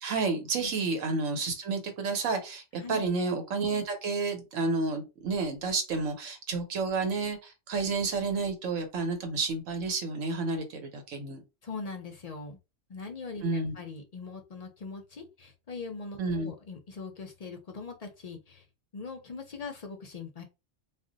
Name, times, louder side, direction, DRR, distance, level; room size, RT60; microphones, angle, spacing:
voice 1, 0.0-11.4 13.4-13.7 16.2-16.5, right 4 dB, 85° right, 5 dB, 1.1 m, -30 dB
voice 2, 11.6-12.6 12.9-18.7 18.9-20.4, left 4 dB, 55° left, 4 dB, 0.4 m, -41 dB
2.4 x 2.1 x 3.8 m, 0.27 s
omnidirectional pair, 1.3 m